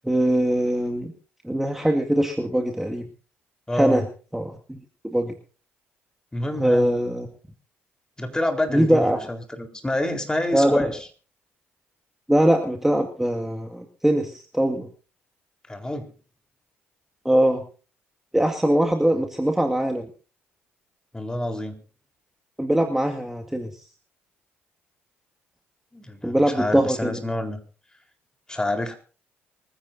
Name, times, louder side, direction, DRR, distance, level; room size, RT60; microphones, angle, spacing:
voice 1, 0.0-1.1 1.4-3.1 3.7-4.0 4.3-4.8 5.0-5.3 6.6-7.3 8.7-9.2 10.5-10.9 12.3-14.9 17.2-17.6 18.3-20.1 22.6-23.7 26.2-27.2, right 1 dB, 5° right, 2 dB, 2.1 m, -22 dB
voice 2, 3.7-4.0 6.3-6.9 8.2-11.1 15.7-16.1 21.1-21.8 25.9-27.6 28.5-28.9, left 1 dB, 15° left, 4 dB, 4.1 m, -27 dB
25.0 x 15.5 x 2.7 m, 0.38 s
hypercardioid pair, 50°, 6 cm